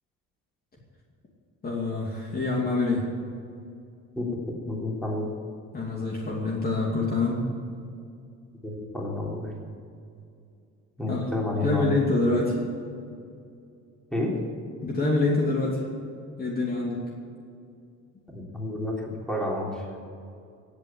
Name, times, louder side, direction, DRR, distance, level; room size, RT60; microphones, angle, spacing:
voice 1, 1.6-3.1 5.7-7.4 11.1-11.3 11.5-12.6 14.8-15.8 16.4-17.0, left 2 dB, 30° left, -2 dB, 2.6 m, -26 dB
voice 2, 4.2-5.3 8.6-9.5 11.0-11.9 14.1-14.4 18.3-19.9, left 2 dB, ahead, -2 dB, 3.5 m, -30 dB
16.5 x 8.4 x 8.7 m, 2.4 s
cardioid pair, 120°, 31 cm